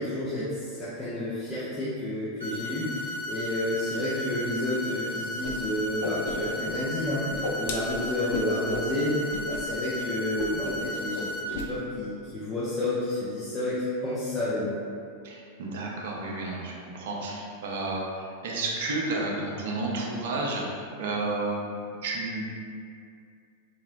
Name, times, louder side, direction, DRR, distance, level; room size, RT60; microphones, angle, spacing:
voice 1, 0.0-14.8, left 1 dB, 20° left, -11 dB, 0.6 m, -30 dB
sound 1, 2.4-11.4, left 1 dB, 80° left, 0.8 m, -34 dB
Whoosh swoosh swish, 5.4-5.5 5.8-6.7 7.0-8.9 9.3-9.6 9.8-10.0 10.4-10.9 11.1-11.7, left 3 dB, 55° left, 0.4 m, -34 dB
voice 2, 15.2-18.1 18.4-20.6 21.0-21.6 21.9-22.4, right 2 dB, 55° right, -2 dB, 0.5 m, -31 dB
2.9 x 2.9 x 2.5 m, 2.3 s
figure-of-eight pair, 90°, 0 cm